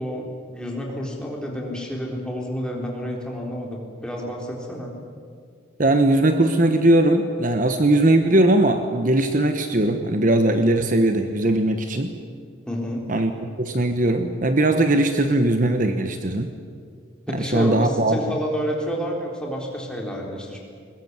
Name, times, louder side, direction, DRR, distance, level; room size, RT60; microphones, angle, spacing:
voice 1, 0.0-4.9 12.7-13.0 17.3-20.6, equal, 5° left, -1 dB, 4.0 m, -29 dB
voice 2, 5.8-12.1 13.1-16.5 17.3-18.2, right 1 dB, 40° right, 7 dB, 1.2 m, -19 dB
21.5 x 21.0 x 9.7 m, 2.2 s
head